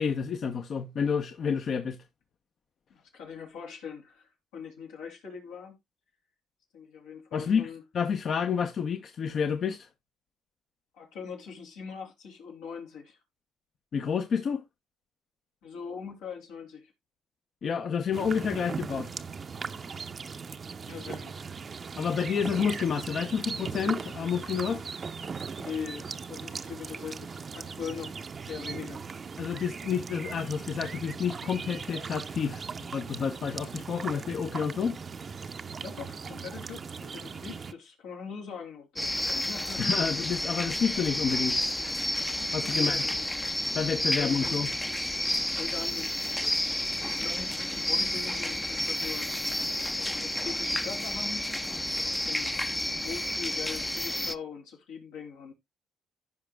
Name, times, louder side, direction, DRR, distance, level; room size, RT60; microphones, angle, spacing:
voice 1, 0.0-2.0 7.3-7.7 7.9-9.9 13.9-14.6 17.6-19.1 22.0-24.9 29.4-32.7 32.9-35.0 39.8-41.6 42.5-43.1 43.7-44.7, left 6 dB, 55° left, 0.8 m, -29 dB
voice 2, 2.9-5.8 6.7-7.8 10.9-13.2 15.6-16.9 20.9-21.5 25.6-28.2 28.5-29.0 35.8-39.8 42.7-43.5 44.2-44.6 45.6-49.3 50.0-51.6 51.9-52.5 53.0-55.5, left 6 dB, 85° left, 3.1 m, -41 dB
sound 1, 18.1-37.7, right 5 dB, 40° right, 0.6 m, -39 dB
sound 2, 39.0-54.3, left 1 dB, 10° left, 0.5 m, -30 dB
15.0 x 5.1 x 2.2 m
supercardioid pair, 80°, 0 cm